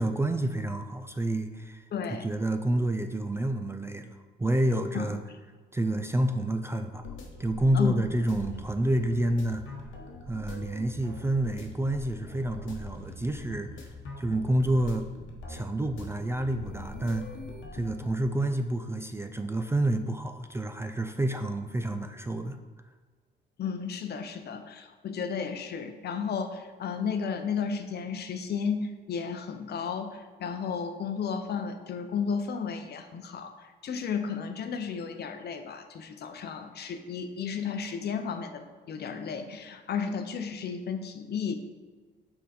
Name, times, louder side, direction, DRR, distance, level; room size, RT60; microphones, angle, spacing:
voice 1, 0.0-1.8 2.1-5.2 5.7-7.0 7.4-9.6 10.3-13.9 14.2-15.1 15.5-17.3 17.7-22.6, right 1 dB, 15° right, 7 dB, 0.3 m, -29 dB
voice 2, 1.9-2.3 4.9-5.1 7.7-8.0 23.6-41.5, left 6 dB, 55° left, 7 dB, 0.6 m, -33 dB
sound 1, 7.0-18.1, left 2 dB, 75° left, 1.0 m, -43 dB
6.3 x 3.9 x 4.1 m, 1.4 s
cardioid pair, 90°, 20 cm